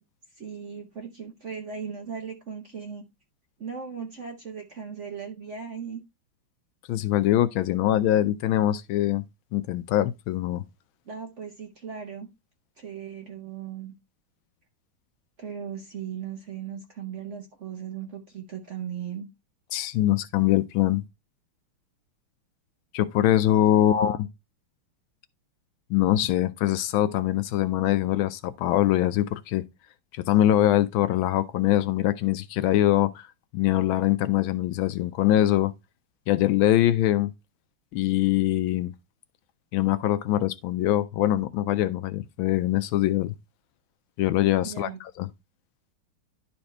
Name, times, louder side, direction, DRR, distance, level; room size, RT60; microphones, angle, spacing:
voice 1, 0.4-3.0 3.6-6.0 11.1-12.3 12.8-14.0 15.4-19.3 23.8-24.1 44.6-45.0, right 7 dB, 50° right, 1.0 m, -37 dB
voice 2, 6.9-9.2 9.5-10.6 19.7-21.0 22.9-24.3 25.9-29.6 30.1-33.3 33.5-35.7 36.3-37.3 37.9-38.9 39.7-43.3 44.2-45.3, left 13 dB, 75° left, 1.3 m, -23 dB
11.5 x 4.2 x 3.2 m
omnidirectional pair, 2.4 m